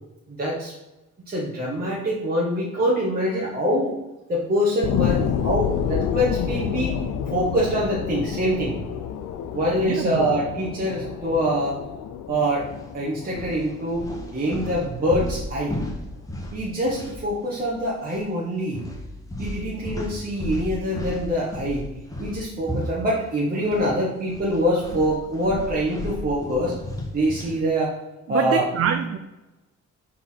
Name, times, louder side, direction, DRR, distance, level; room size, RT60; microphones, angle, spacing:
voice 1, 0.3-0.7 1.3-3.9 4.3-6.9 7.3-8.8 9.5-11.8 12.3-12.7 12.9-15.9 16.5-18.8 19.4-21.8 22.2-26.8 27.1-27.9 28.3-28.6, equal, 30° right, -6 dB, 1.8 m, -24 dB
sound 1, 4.8-15.8 16.3-16.4, left 8 dB, 85° left, 0.7 m, -29 dB
voice 2, 9.8-10.3 28.3-29.2, right 8 dB, 50° right, 7 dB, 0.6 m, -25 dB
sound 2, 12.6-12.8 13.3-17.7 18.0-18.2 18.7-23.9 24.2-27.6, left 1 dB, 10° left, 1.5 m, -34 dB
5.4 x 4.2 x 5.9 m, 1.0 s
cardioid pair, 90°, 30 cm